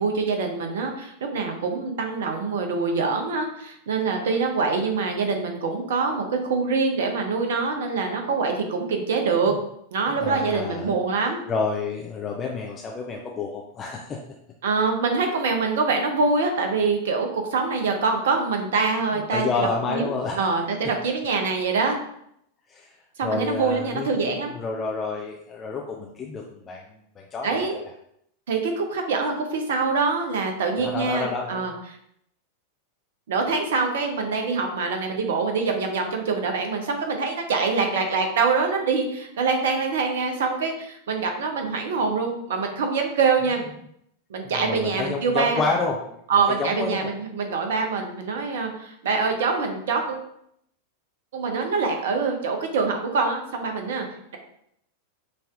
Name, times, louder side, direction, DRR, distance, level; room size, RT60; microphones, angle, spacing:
voice 1, 0.0-9.5 9.9-11.4 14.6-19.4 19.9-20.1 20.4-22.0 23.2-24.5 27.4-27.8 28.5-31.7 33.3-43.6 44.3-45.6 46.3-50.3 51.3-54.1, right 4 dB, 60° right, 4 dB, 0.7 m, -24 dB
voice 2, 10.2-10.9 11.5-14.2 19.1-20.4 22.7-22.9 23.2-24.2 24.5-26.8 27.3-27.6 30.8-31.7 44.4-46.2 46.5-47.1, left 4 dB, 25° left, 0 dB, 0.4 m, -29 dB
5.2 x 2.7 x 2.4 m, 0.74 s
figure-of-eight pair, 90°, 0 cm